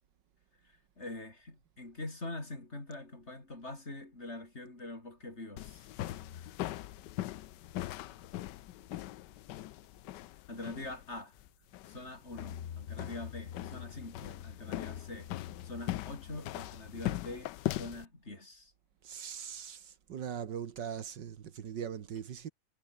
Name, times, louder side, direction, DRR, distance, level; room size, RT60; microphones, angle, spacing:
voice 1, 0.6-5.9 10.5-11.3 11.9-15.3 15.6-18.7, left 2 dB, 40° left, 4.7 m, -44 dB
sound 1, 5.6-18.1, left 15 dB, 80° left, 1.3 m, -41 dB
sound 2, 6.0-8.6 8.9-9.2 9.5-9.6 12.1-17.2, left 9 dB, 55° left, 1.4 m, -48 dB
voice 2, 19.0-22.5, right 8 dB, 80° right, 2.0 m, -40 dB
omnidirectional pair, 1.9 m